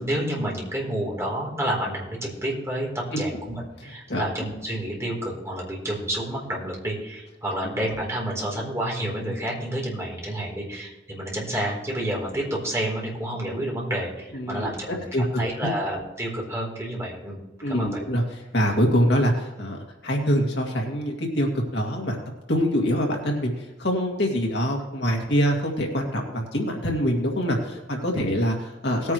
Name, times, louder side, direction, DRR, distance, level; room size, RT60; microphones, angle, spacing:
voice 1, 0.0-17.4 17.7-18.0 28.1-28.3, right 1 dB, 15° right, -3 dB, 3.7 m, -29 dB
voice 2, 14.3-15.2 15.6-15.7 17.6-18.2 18.5-22.2 22.5-29.1, equal, 70° left, 0 dB, 2.3 m, -25 dB
19.0 x 9.4 x 3.2 m, 1.0 s
head